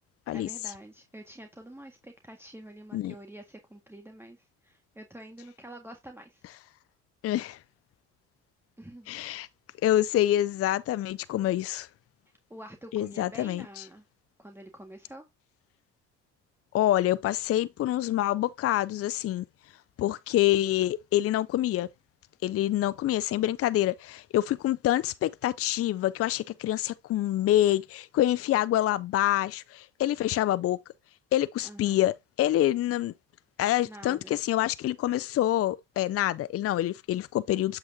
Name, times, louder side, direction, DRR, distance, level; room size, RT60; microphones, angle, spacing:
voice 1, 0.3-6.4 8.8-9.5 12.5-14.0 14.4-15.3 31.6-32.0 33.8-34.4, right 1 dB, 10° right, 1.7 m, -47 dB
voice 2, 7.2-7.6 9.1-9.5 9.8-11.9 12.9-13.8 16.7-19.4 20.0-21.9 22.4-30.8 31.3-33.1 33.6-37.8, left 13 dB, 50° left, 0.5 m, -26 dB
7.7 x 5.9 x 2.7 m
supercardioid pair, 60°, 30 cm